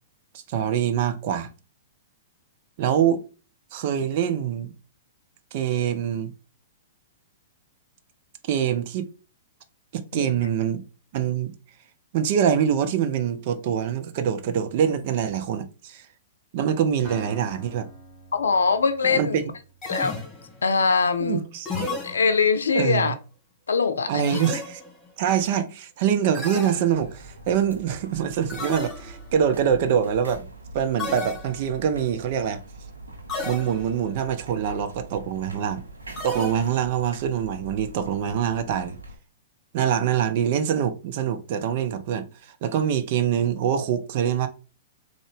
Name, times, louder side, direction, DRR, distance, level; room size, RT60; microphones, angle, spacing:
voice 1, 0.5-1.5 2.8-3.2 3.7-4.7 5.5-6.3 8.5-9.1 9.9-10.8 11.1-11.5 12.1-16.0 16.5-17.9 19.1-19.4 21.2-21.7 22.7-23.1 24.1-24.8 25.2-30.5 30.7-32.6 33.4-35.8 36.2-39.0 39.7-44.5, right 8 dB, 50° right, 0.6 m, -24 dB
Acoustic guitar, 17.0-20.9, left 1 dB, 35° right, 1.9 m, -47 dB
voice 2, 18.3-19.4 19.9-20.2 20.6-21.5 22.0-23.1 23.7-24.4, left 5 dB, 80° left, 0.5 m, -22 dB
sound 1, 19.8-20.7 21.7-22.7 24.2-25.1 26.3-27.4 28.5-29.3 31.0-31.9 33.3-34.1 36.2-37.0, left 2 dB, 20° left, 1.9 m, -34 dB
sound 2, 26.9-39.2, right 1 dB, 85° right, 0.8 m, -43 dB
3.7 x 2.5 x 3.5 m
hypercardioid pair, 110°, 0 cm